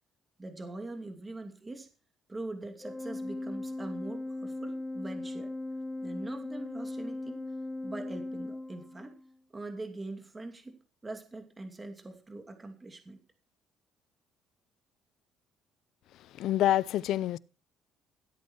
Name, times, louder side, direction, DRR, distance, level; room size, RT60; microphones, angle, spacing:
voice 1, 0.4-1.9 2.3-5.5 6.0-7.5 7.8-9.1 9.5-10.7 11.0-13.2, right 2 dB, 20° right, 2.6 m, -42 dB
Organ, 2.8-9.3, left 2 dB, 10° left, 2.0 m, -38 dB
voice 2, 16.4-17.4, left 13 dB, 70° left, 0.5 m, -26 dB
15.5 x 8.5 x 4.6 m
cardioid pair, 100°, 0 cm